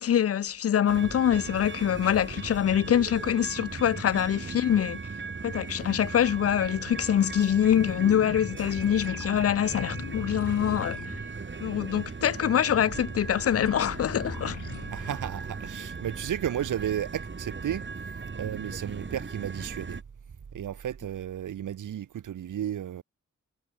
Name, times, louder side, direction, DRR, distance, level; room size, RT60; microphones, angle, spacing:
voice 1, 0.0-5.0 5.4-11.0 11.6-14.6, left 10 dB, 50° left, 0.4 m, -25 dB
sound 1, 0.9-20.0, right 4 dB, 40° right, 5.1 m, -38 dB
sound 2, 7.7-15.2, left 7 dB, 75° left, 5.8 m, -41 dB
sound 3, 12.8-21.9, right 6 dB, 55° right, 2.2 m, -48 dB
voice 2, 14.9-17.8 18.3-20.0 20.5-23.0, right 10 dB, 85° right, 0.7 m, -33 dB
wide cardioid pair, 155°, 30 cm